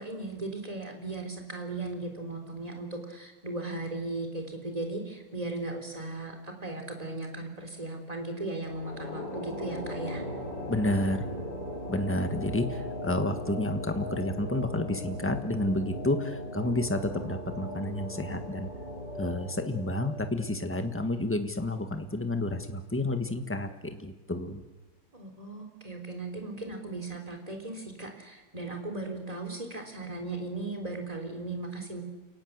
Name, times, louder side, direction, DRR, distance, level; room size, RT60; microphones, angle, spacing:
voice 1, 0.0-10.2 25.1-32.0, right 2 dB, 20° right, 3 dB, 3.9 m, -37 dB
sound 1, 8.6-21.2, equal, 50° left, 8.2 m, -38 dB
voice 2, 10.7-11.3 11.9-18.7 19.1-24.6, left 1 dB, 5° left, 6 dB, 1.4 m, -30 dB
29.5 x 18.5 x 8.1 m, 1.2 s
omnidirectional pair, 2.0 m